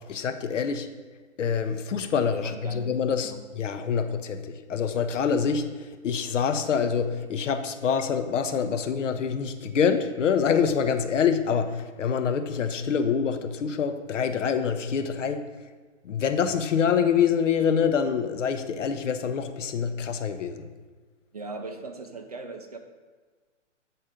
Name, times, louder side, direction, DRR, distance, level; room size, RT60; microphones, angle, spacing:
voice 1, 0.1-0.9 1.4-15.4 16.0-20.7, left 7 dB, 75° left, 9 dB, 0.8 m, -26 dB
voice 2, 2.4-2.8 3.1-3.4 21.3-22.8, right 3 dB, 35° right, 5 dB, 0.4 m, -39 dB
7.9 x 4.2 x 5.0 m, 1.4 s
hypercardioid pair, 165°, 37 cm